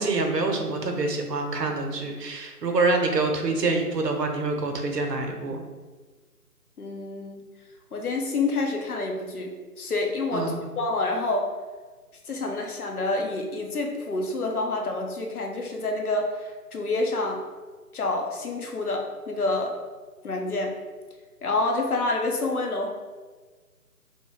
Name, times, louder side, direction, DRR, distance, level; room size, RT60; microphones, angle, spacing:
voice 1, 0.0-5.6 10.3-10.6, right 3 dB, 85° right, 3 dB, 0.7 m, -26 dB
voice 2, 6.8-7.4 7.9-11.5 12.3-17.4 17.9-19.7 20.2-20.7 21.4-22.9, left 2 dB, 65° left, 1 dB, 0.7 m, -28 dB
2.8 x 2.2 x 3.5 m, 1.4 s
figure-of-eight pair, 160°, 47 cm